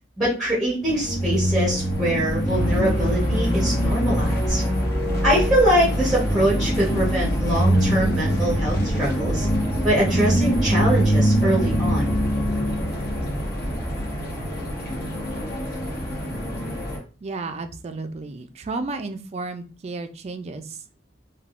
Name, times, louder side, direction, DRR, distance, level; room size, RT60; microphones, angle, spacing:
voice 1, 0.2-4.6 5.2-9.5 9.8-12.1, right 1 dB, ahead, -5 dB, 0.8 m, -23 dB
sound 1, 0.8-17.0, equal, 55° left, 1.2 m, -24 dB
sound 2, 2.5-7.5, equal, 25° left, 1.0 m, -26 dB
voice 2, 17.2-20.8, right 3 dB, 35° right, 8 dB, 0.3 m, -32 dB
3.4 x 2.3 x 2.4 m, 0.36 s
head